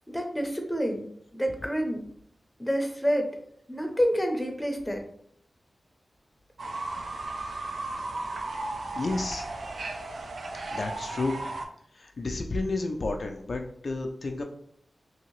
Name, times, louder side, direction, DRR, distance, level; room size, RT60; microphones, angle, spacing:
voice 1, 0.1-1.0 1.3-2.0 2.6-3.3 3.7-5.0, equal, 10° left, 3 dB, 0.6 m, -28 dB
Fowl / Bird, 6.6-11.6, right 2 dB, 85° right, 0.4 m, -35 dB
voice 2, 8.9-9.5 10.7-11.4 12.0-14.4, left 2 dB, 60° left, 3 dB, 0.3 m, -31 dB
2.8 x 2.7 x 3.0 m, 0.67 s
wide cardioid pair, 85°, 0 cm